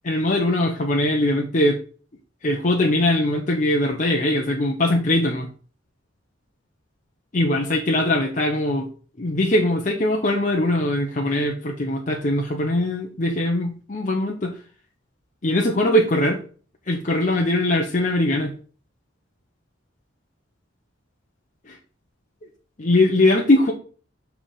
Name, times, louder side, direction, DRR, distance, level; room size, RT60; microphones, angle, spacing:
voice 1, 0.0-1.8 2.4-5.5 7.3-8.9 9.2-14.6 15.4-16.4 16.9-18.5 21.7-21.8 22.8-23.7, left 1 dB, 40° left, 1 dB, 0.8 m, -21 dB
7.6 x 3.5 x 5.6 m, 0.41 s
head